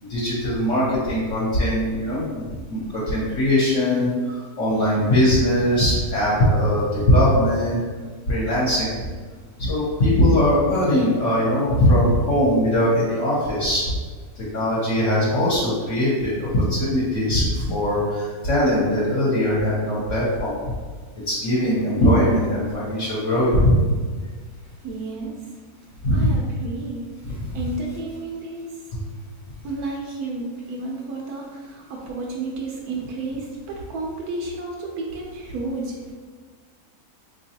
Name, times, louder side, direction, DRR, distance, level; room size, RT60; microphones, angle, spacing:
voice 1, 0.0-2.3 2.7-7.8 8.3-8.9 9.6-13.8 14.4-20.6 21.3-23.7 26.0-26.3, equal, 55° left, -7 dB, 1.1 m, -20 dB
voice 2, 24.8-25.5 26.1-27.1 27.5-28.9 29.6-36.1, right 2 dB, 80° right, -1 dB, 1.1 m, -32 dB
3.9 x 2.9 x 2.8 m, 1.5 s
omnidirectional pair, 1.6 m